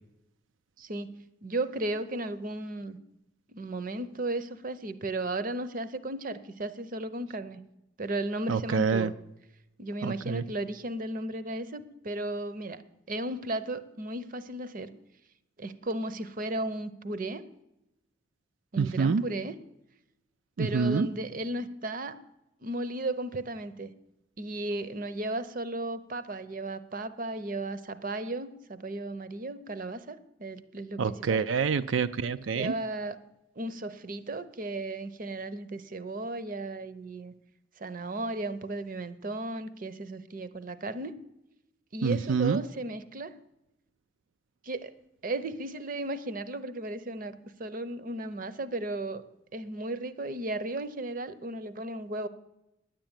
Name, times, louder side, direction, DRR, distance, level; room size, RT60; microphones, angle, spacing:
voice 1, 0.8-1.1 1.4-3.0 3.5-7.6 8.0-9.1 9.8-12.8 13.1-14.9 15.6-17.4 18.7-19.5 20.6-22.2 22.6-23.9 24.4-31.4 32.5-33.2 33.6-37.3 37.8-41.2 41.9-43.3 44.6-44.9 45.2-49.2 49.5-52.3, right 2 dB, 45° right, 13 dB, 0.7 m, -35 dB
voice 2, 8.5-9.1 10.0-10.4 18.8-19.2 20.6-21.1 31.0-32.7 42.0-42.6, right 5 dB, 85° right, 11 dB, 0.4 m, -27 dB
10.5 x 9.0 x 8.9 m, 0.89 s
head